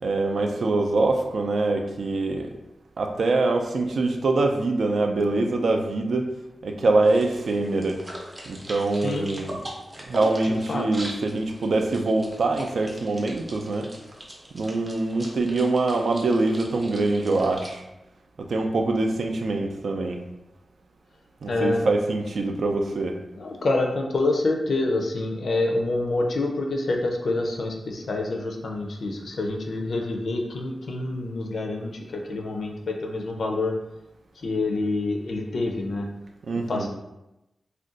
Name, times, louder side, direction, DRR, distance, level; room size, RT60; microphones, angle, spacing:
voice 1, 0.0-2.6 3.0-6.3 6.6-8.0 8.5-9.7 10.1-13.9 14.5-17.8 18.4-20.2 21.4-23.2 36.4-36.9, right 2 dB, 80° right, 3 dB, 0.3 m, -24 dB
sound 1, 7.0-17.7, right 1 dB, 25° right, 0.5 m, -41 dB
voice 2, 10.4-10.8 21.5-21.8 23.4-33.7 34.4-36.1 36.7-36.9, left 2 dB, 75° left, 2 dB, 0.4 m, -27 dB
2.4 x 2.2 x 3.7 m, 0.92 s
wide cardioid pair, 130°, 0 cm